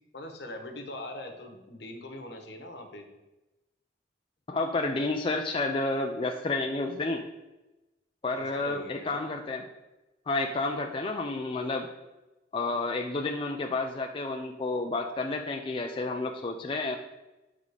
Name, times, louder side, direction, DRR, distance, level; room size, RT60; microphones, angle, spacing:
voice 1, 0.1-3.1 8.3-9.3, left 1 dB, 65° left, 4 dB, 1.1 m, -42 dB
voice 2, 4.5-7.2 8.2-9.7 10.3-11.9 12.5-17.0, left 3 dB, 30° left, 2 dB, 0.4 m, -30 dB
8.1 x 3.6 x 5.2 m, 1.0 s
head